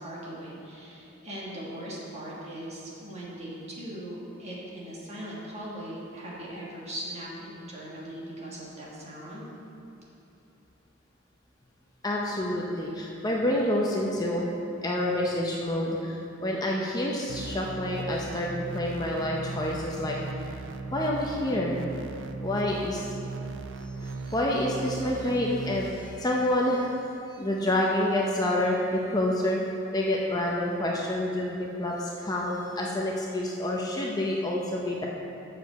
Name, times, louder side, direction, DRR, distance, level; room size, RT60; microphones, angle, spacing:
voice 1, 0.0-9.5, right 1 dB, 35° right, -5 dB, 1.6 m, -39 dB
voice 2, 12.0-14.5 14.8-20.2 20.9-21.8 22.4-23.2 23.8-27.0 27.4-29.6 29.9-35.1, left 1 dB, 20° left, -2 dB, 0.6 m, -28 dB
sound 1, 17.3-25.9, right 3 dB, 65° right, 0.4 m, -37 dB
6.3 x 5.1 x 6.8 m, 2.9 s
head